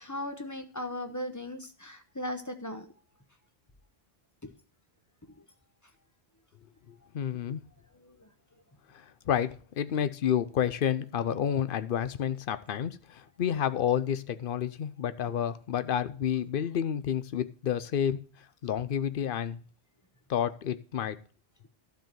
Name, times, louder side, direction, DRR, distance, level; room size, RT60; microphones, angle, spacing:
voice 1, 0.0-2.9 4.4-4.5 7.3-7.4 8.0-8.3 9.9-10.1, left 1 dB, 20° left, 0.9 m, -38 dB
voice 2, 6.9-7.6 8.9-18.2 18.6-19.6 20.3-21.2, left 9 dB, 60° left, 0.8 m, -30 dB
12.0 x 4.6 x 7.6 m
omnidirectional pair, 1.1 m